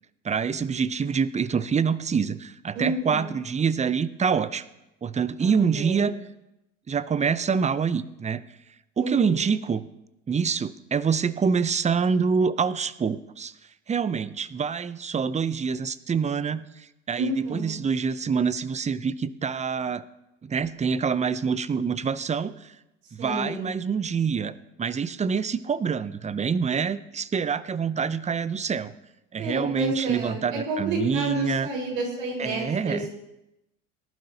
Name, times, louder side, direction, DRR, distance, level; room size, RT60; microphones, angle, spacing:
voice 1, 0.2-4.6 5.0-6.1 6.9-8.4 9.0-9.8 10.3-13.5 13.9-16.6 17.1-20.0 20.4-22.5 23.1-24.5 24.8-28.9 29.3-31.7 32.4-33.1, right 6 dB, 20° right, 16 dB, 0.6 m, -26 dB
voice 2, 2.7-3.3 5.4-6.1 9.0-9.5 17.1-17.8 23.2-23.7 29.4-33.1, right 1 dB, 90° right, -1 dB, 4.6 m, -30 dB
18.5 x 11.5 x 2.9 m, 0.91 s
hypercardioid pair, 80°, 38 cm